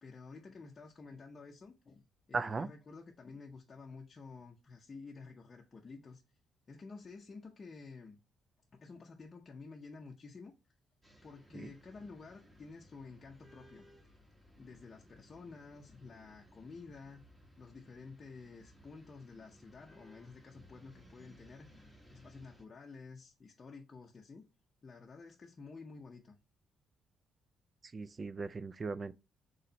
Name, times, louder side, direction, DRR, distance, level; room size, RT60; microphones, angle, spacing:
voice 1, 0.0-6.4 6.7-8.2 8.7-10.7 11.2-14.2 14.6-17.3 17.6-24.5 24.8-26.4, left 4 dB, 35° left, 0.6 m, -51 dB
voice 2, 2.3-2.7 11.5-11.7 27.9-29.1, right 4 dB, 35° right, 0.3 m, -37 dB
sound 1, 11.0-22.6, equal, 10° right, 1.3 m, -61 dB
4.2 x 3.1 x 3.9 m
cardioid pair, 90°, 0 cm